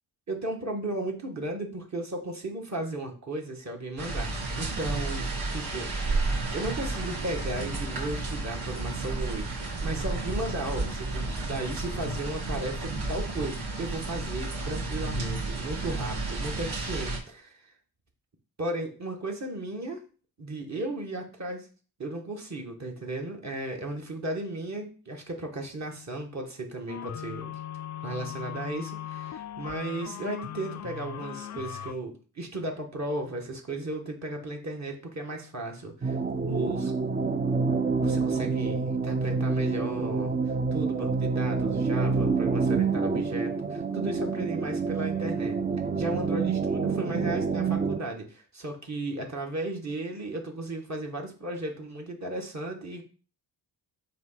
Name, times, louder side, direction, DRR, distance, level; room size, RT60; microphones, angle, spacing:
voice 1, 0.3-5.3 5.5-5.9 6.5-9.6 9.8-17.7 18.6-20.0 20.4-21.7 22.0-27.6 28.0-36.2 36.5-36.9 38.0-45.6 46.0-53.0, right 2 dB, 40° right, 1 dB, 1.4 m, -35 dB
sound 1, 4.0-17.2, right 3 dB, 65° right, 2.2 m, -32 dB
sound 2, 26.9-31.9, left 10 dB, 40° left, 0.4 m, -38 dB
sound 3, 36.0-48.0, right 4 dB, 20° right, 0.5 m, -27 dB
7.5 x 2.9 x 5.7 m, 0.38 s
wide cardioid pair, 120°, 43 cm